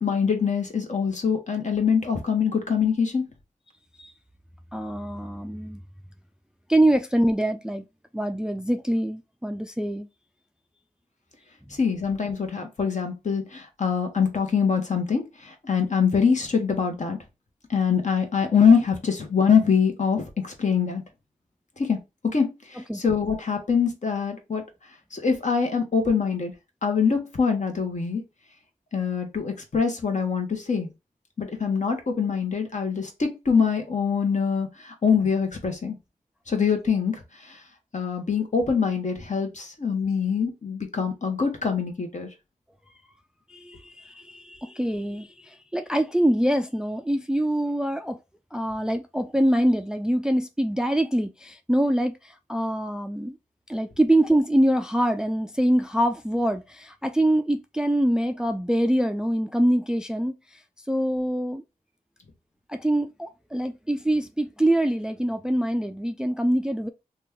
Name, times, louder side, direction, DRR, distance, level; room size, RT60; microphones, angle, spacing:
voice 1, 0.0-3.2 11.8-17.2 17.7-21.0 21.8-22.0 22.3-24.6 25.1-26.5 26.8-28.2 28.9-30.9 31.4-36.0 36.5-37.6 37.9-42.3, left 6 dB, 55° left, 1.0 m, -24 dB
voice 2, 4.7-5.8 6.7-7.8 8.1-10.1 22.9-23.0 43.5-48.2 48.5-53.4 53.7-60.3 60.9-61.6 62.7-66.9, right 1 dB, 5° right, 0.3 m, -24 dB
2.9 x 2.3 x 3.5 m
cardioid pair, 55°, 15 cm